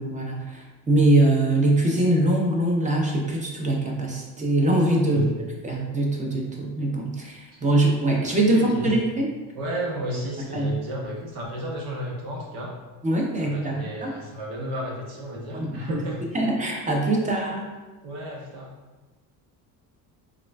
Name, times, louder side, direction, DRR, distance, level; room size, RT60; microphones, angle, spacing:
voice 1, 0.0-5.3 5.6-9.3 10.5-10.7 13.0-14.1 15.5-16.0 16.3-17.6, right 1 dB, 20° right, -1 dB, 0.6 m, -23 dB
voice 2, 8.5-8.9 9.5-12.7 13.4-16.3 18.0-18.7, equal, 80° right, -2 dB, 1.0 m, -32 dB
3.6 x 2.3 x 2.2 m, 1.2 s
supercardioid pair, 85°, 40 cm